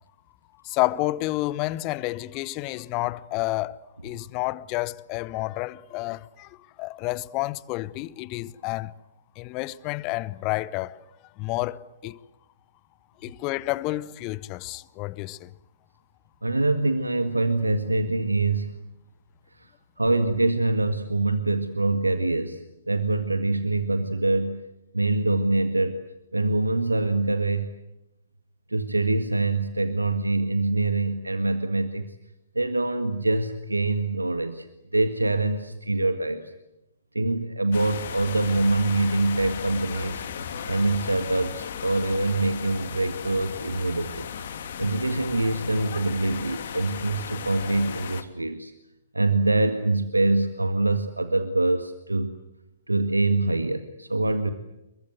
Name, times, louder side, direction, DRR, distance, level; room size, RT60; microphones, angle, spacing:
voice 1, 0.6-8.9 9.4-11.0 11.4-12.2 13.2-15.5, left 19 dB, 30° left, 1.0 m, -30 dB
voice 2, 16.4-18.8 19.5-19.7 20.0-24.6 24.9-26.0 26.3-27.7 28.7-32.2 32.6-34.7 34.9-36.5 37.1-40.3 40.7-44.3 44.8-48.7 49.1-52.4 52.9-54.5, right 2 dB, 85° right, 1.8 m, -24 dB
sound 1, 37.7-48.2, left 7 dB, 55° left, 2.9 m, -36 dB
30.0 x 23.0 x 8.0 m
figure-of-eight pair, 120°, 0 cm